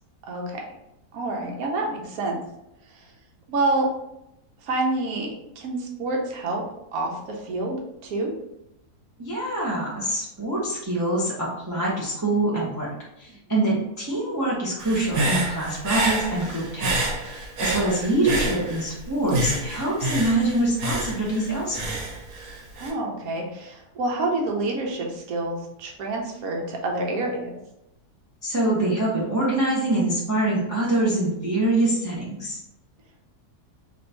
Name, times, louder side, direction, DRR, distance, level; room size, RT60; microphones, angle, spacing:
voice 1, 0.3-0.6 1.1-2.4 2.9-3.0 3.5-3.9 4.6-5.3 5.6-6.6 6.9-8.3 22.8-27.5, right 2 dB, 65° right, 0 dB, 1.1 m, -27 dB
voice 2, 9.2-12.9 13.2-22.0 28.4-32.6, right 1 dB, 30° right, -6 dB, 0.3 m, -25 dB
Human voice / Breathing, 14.8-19.0 19.3-22.9, right 1 dB, 85° right, 1.3 m, -28 dB
3.0 x 2.6 x 3.3 m, 0.87 s
omnidirectional pair, 1.7 m